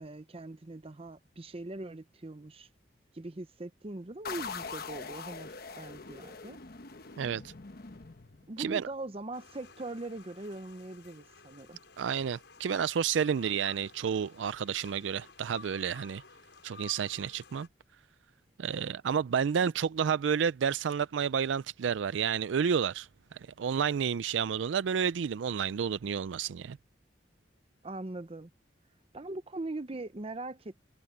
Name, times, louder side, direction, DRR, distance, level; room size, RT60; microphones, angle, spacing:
voice 1, 0.0-2.7 3.1-6.6 8.5-11.8 27.8-28.5 29.1-30.8, right 2 dB, 30° right, 0.7 m, -41 dB
sound 1, 4.3-8.8, left 5 dB, 55° left, 1.1 m, -43 dB
voice 2, 7.2-7.5 8.6-8.9 12.0-16.2 16.6-17.7 18.6-26.8, right 7 dB, 80° right, 0.4 m, -30 dB
sound 2, 9.3-17.7, left 4 dB, 75° left, 6.5 m, -54 dB
head